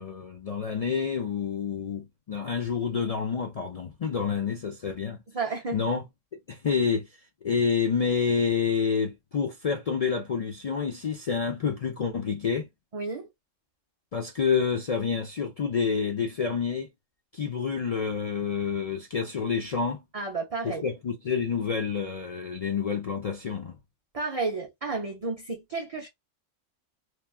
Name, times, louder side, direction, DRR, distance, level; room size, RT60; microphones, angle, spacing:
voice 1, 0.0-5.2 5.7-6.0 6.5-7.1 7.4-12.7 14.1-16.9 17.3-20.0 20.6-23.8, left 6 dB, 75° left, 0.3 m, -28 dB
voice 2, 5.3-5.8 12.9-13.3 20.1-20.9 24.1-26.1, right 4 dB, 40° right, 0.5 m, -31 dB
3.1 x 2.3 x 2.3 m
omnidirectional pair, 1.3 m